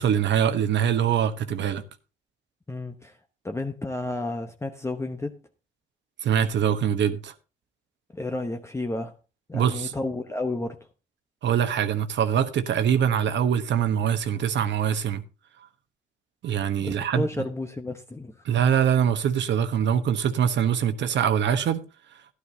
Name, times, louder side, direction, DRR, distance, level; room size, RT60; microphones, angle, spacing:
voice 1, 0.0-1.8 6.2-7.3 9.5-9.9 11.4-15.2 16.4-17.3 18.4-21.8, right 8 dB, 65° right, 1.1 m, -23 dB
voice 2, 2.7-3.2 3.4-5.4 8.1-9.1 9.5-10.8 16.8-18.3, left 2 dB, 15° left, 0.9 m, -31 dB
13.0 x 11.5 x 2.8 m
cardioid pair, 90°, 20 cm